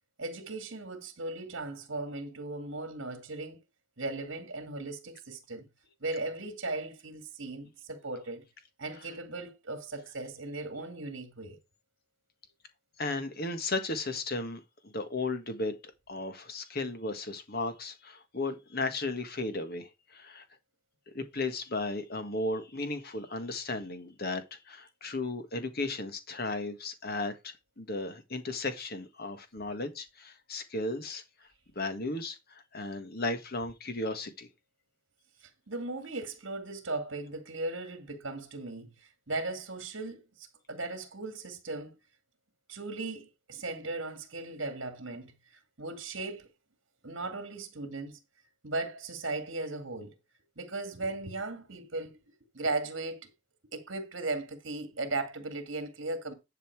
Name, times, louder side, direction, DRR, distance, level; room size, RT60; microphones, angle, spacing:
voice 1, 0.2-3.6 4.0-5.7 6.0-8.4 8.8-11.6 35.4-41.9 42.7-46.5 47.0-48.2 48.6-50.1 50.6-52.2 52.5-53.3 53.7-56.3, right 2 dB, 60° right, 2.1 m, -37 dB
voice 2, 13.0-20.4 21.1-31.2 31.7-34.5, left 2 dB, 50° left, 1.5 m, -35 dB
11.0 x 5.7 x 4.6 m
head